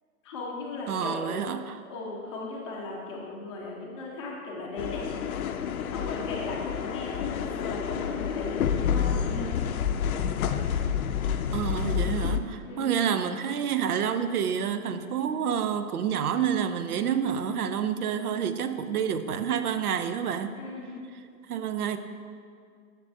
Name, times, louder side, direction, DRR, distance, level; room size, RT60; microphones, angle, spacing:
voice 1, 0.2-1.4 1.9-5.1 5.9-9.5 12.6-12.9 20.5-20.9, left 2 dB, 20° left, -3 dB, 0.6 m, -37 dB
voice 2, 0.9-1.8 11.5-20.6 21.5-22.0, right 8 dB, 80° right, 10 dB, 0.6 m, -28 dB
sound 1, 4.8-12.4, left 8 dB, 70° left, 0.5 m, -29 dB
7.3 x 6.8 x 2.7 m, 2.2 s
hypercardioid pair, 150°, 44 cm